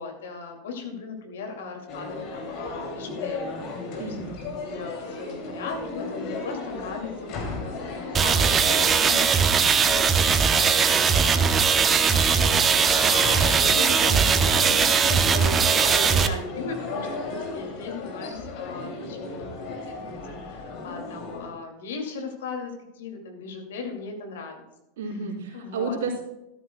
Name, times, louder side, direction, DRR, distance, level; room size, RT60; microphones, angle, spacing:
voice 1, 0.0-4.2 4.5-19.8 20.0-24.6 25.5-26.0, left 3 dB, 70° left, 3 dB, 2.4 m, -38 dB
sound 1, 1.9-21.5, left 3 dB, 50° left, 2.7 m, -35 dB
voice 2, 4.0-4.5 25.0-26.2, right 4 dB, 65° right, -3 dB, 3.7 m, -31 dB
sound 2, 8.1-16.3, right 6 dB, 25° right, 0.8 m, -20 dB
13.0 x 12.5 x 2.3 m, 0.90 s
hypercardioid pair, 90°, 0 cm